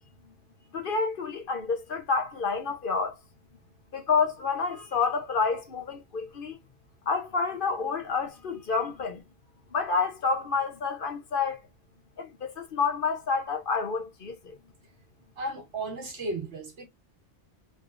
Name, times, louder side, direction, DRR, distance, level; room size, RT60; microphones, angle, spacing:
voice 1, 0.7-3.1 3.9-6.6 7.1-9.2 9.7-11.6 12.2-14.6, left 5 dB, 55° left, 0.9 m, -29 dB
voice 2, 15.4-16.9, right 2 dB, 75° right, 1.6 m, -34 dB
3.2 x 3.2 x 2.4 m
omnidirectional pair, 1.2 m